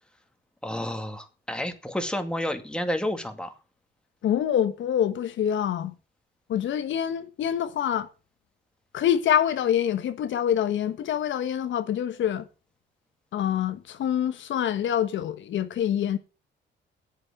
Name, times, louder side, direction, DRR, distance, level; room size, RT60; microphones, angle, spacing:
voice 1, 0.6-3.5, left 1 dB, 5° left, 2.2 m, -30 dB
voice 2, 4.2-5.9 6.5-8.1 8.9-12.5 13.3-16.2, left 10 dB, 70° left, 1.2 m, -26 dB
8.5 x 8.0 x 7.6 m
cardioid pair, 90°, 20 cm